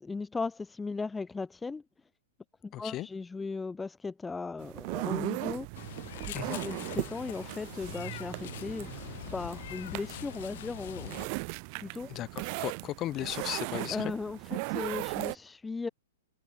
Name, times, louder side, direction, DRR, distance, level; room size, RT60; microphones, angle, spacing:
voice 1, 0.0-1.8 2.6-5.7 6.2-8.9 9.3-11.2 11.7-12.1 13.9-15.9, left 4 dB, 10° left, 0.9 m, -37 dB
voice 2, 2.7-3.1 6.3-6.6 12.1-14.1, left 15 dB, 30° left, 2.3 m, -36 dB
sound 1, 4.6-15.3, right 39 dB, 45° right, 1.7 m, -38 dB
Meow, 5.7-11.3, left 14 dB, 60° left, 2.1 m, -44 dB
hypercardioid pair, 130°, 0 cm